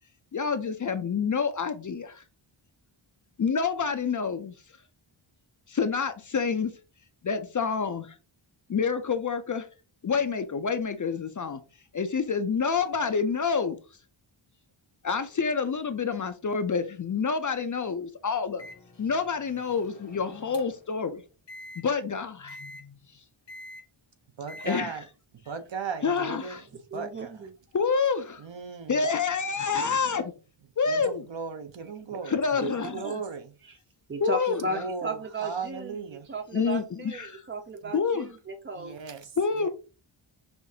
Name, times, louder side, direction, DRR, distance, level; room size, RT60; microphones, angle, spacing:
voice 1, 0.3-2.2 3.4-4.5 5.7-6.7 7.2-8.2 8.7-9.7 10.0-11.6 11.9-13.8 15.0-18.6 19.0-21.2 21.8-23.0 24.6-24.9 26.0-26.6 27.7-28.4 28.9-30.3 30.8-31.2 32.2-33.1 34.2-34.6 36.5-37.4 37.9-38.3 39.4-39.7, left 5 dB, 40° left, 0.4 m, -28 dB
Microwave oven, 18.6-20.9 21.5-21.8 22.5-22.8 23.5-23.8 24.5-24.8, left 1 dB, 60° left, 1.0 m, -46 dB
voice 2, 24.4-25.0 25.5-26.6 26.9-27.3 28.4-29.0 30.9-33.5 34.7-36.3 37.8-37.9 38.8-39.3 39.6-39.7, right 5 dB, 60° right, 0.8 m, -37 dB
voice 3, 26.9-27.5 32.1-32.2 32.6-33.2 33.6-33.8 34.1-36.0 36.2-39.0, right 2 dB, 30° right, 0.3 m, -35 dB
5.5 x 2.4 x 2.7 m
wide cardioid pair, 90°, 50 cm